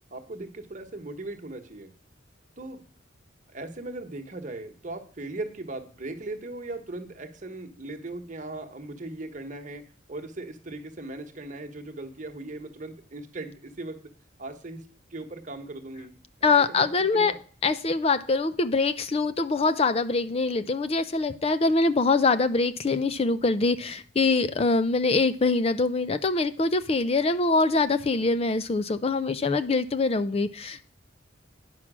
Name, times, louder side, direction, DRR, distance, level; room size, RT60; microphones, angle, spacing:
voice 1, 0.1-1.9 2.6-2.8 3.5-9.8 10.1-14.1 14.4-16.1 16.4-17.4, right 2 dB, 40° right, 6 dB, 1.2 m, -38 dB
voice 2, 16.4-17.3 17.6-30.8, left 3 dB, 30° left, 13 dB, 0.4 m, -24 dB
10.0 x 5.9 x 6.1 m, 0.43 s
head